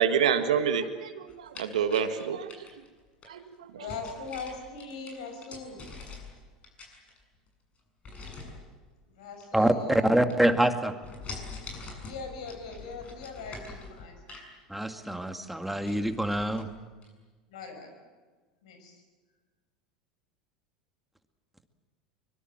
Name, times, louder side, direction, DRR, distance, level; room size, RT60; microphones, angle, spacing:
voice 1, 0.0-2.7 3.3-3.9, right 7 dB, 75° right, 8 dB, 1.5 m, -28 dB
sound 1, 1.3-3.3 3.9-6.4 6.6-7.5 8.0-8.6 9.3-10.1 10.3-10.7 11.0-14.5 15.0-15.1 15.4-15.5 15.8-16.6 17.0-17.1, left 3 dB, 35° left, 7.4 m, -44 dB
voice 2, 3.8-5.8 9.1-10.1 12.0-14.4 17.5-17.9 18.6-19.0, left 4 dB, 70° left, 6 dB, 6.3 m, -41 dB
voice 3, 9.5-11.0 14.7-16.7, right 1 dB, 5° right, 7 dB, 2.1 m, -25 dB
24.0 x 23.0 x 7.8 m, 1.4 s
hypercardioid pair, 80°, 4 cm